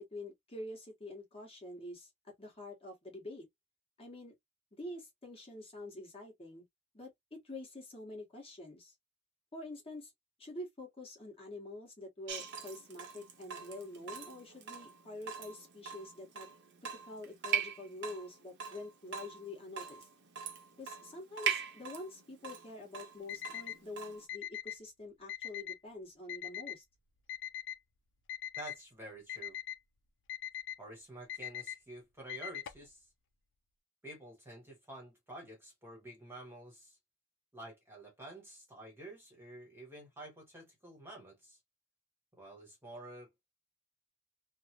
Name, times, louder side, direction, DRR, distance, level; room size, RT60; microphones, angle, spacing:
voice 1, 0.0-3.5 4.0-4.3 4.7-6.6 6.9-8.9 9.5-10.1 10.4-16.5 16.8-20.1 20.8-26.8, left 2 dB, 25° left, 1.2 m, -47 dB
Water tap faucet / Drip, 12.3-24.2, right 7 dB, 50° right, 0.7 m, -41 dB
Alarm, 23.3-23.8 24.3-24.8 25.3-25.8 26.3-26.8 27.3-27.8 28.3-28.8 29.3-29.8 30.3-30.8 31.3-31.8 32.3-32.8, left 11 dB, 55° left, 0.4 m, -41 dB
voice 2, 28.6-29.6 30.8-33.1 34.0-37.0 37.5-41.6 42.4-43.3, right 1 dB, 10° right, 1.0 m, -50 dB
3.1 x 2.0 x 2.7 m
head